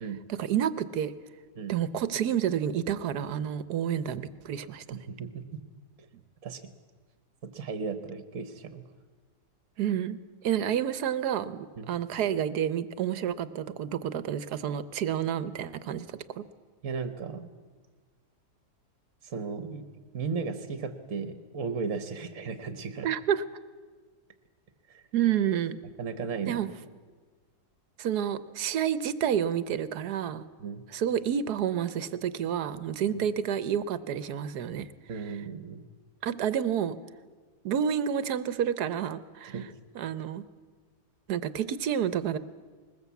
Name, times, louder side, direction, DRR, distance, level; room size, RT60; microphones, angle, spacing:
voice 1, 0.3-1.1 1.7-5.0 9.8-10.2 10.4-16.4 23.0-23.4 25.1-25.8 26.5-26.7 28.0-30.4 30.9-34.9 36.2-37.0 37.6-39.5 39.9-40.4 41.3-42.4, right 9 dB, 75° right, 15 dB, 1.4 m, -29 dB
voice 2, 4.9-5.6 6.4-6.6 7.4-8.8 11.8-11.9 16.8-17.5 19.2-19.9 20.1-23.1 24.9-25.0 26.0-26.6 30.6-30.8 33.1-33.2 35.1-35.9 39.4-39.7, right 5 dB, 55° right, 9 dB, 1.4 m, -35 dB
21.0 x 20.0 x 8.3 m, 1.5 s
omnidirectional pair, 1.8 m